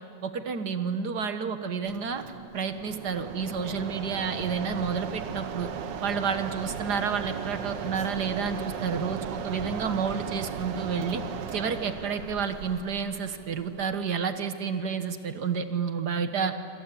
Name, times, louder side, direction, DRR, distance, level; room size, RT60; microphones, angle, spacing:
voice 1, 0.2-2.2 2.5-5.7 6.0-11.2 11.5-16.5, right 6 dB, 70° right, 9 dB, 1.8 m, -30 dB
Mechanisms, 1.9-14.2, right 7 dB, 90° right, 1.8 m, -37 dB
27.0 x 26.0 x 8.4 m, 2.4 s
omnidirectional pair, 1.9 m